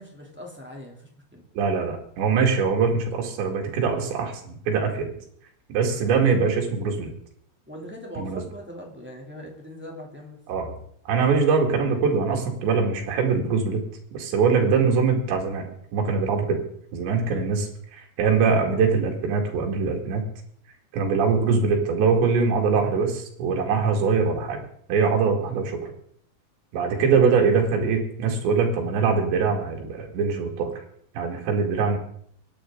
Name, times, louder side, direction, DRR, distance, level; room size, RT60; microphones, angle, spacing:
voice 1, 0.0-1.4 5.9-6.1 7.7-10.4 17.2-17.5 25.4-25.6, equal, 5° right, -1 dB, 2.1 m, -41 dB
voice 2, 1.6-5.1 5.7-7.1 8.2-8.4 10.5-10.7 11.1-13.8 14.1-16.6 16.9-20.2 20.9-24.6 24.9-25.9 26.7-30.7 31.1-32.0, right 5 dB, 85° right, 0 dB, 4.5 m, -23 dB
24.0 x 9.8 x 3.9 m, 0.64 s
omnidirectional pair, 5.0 m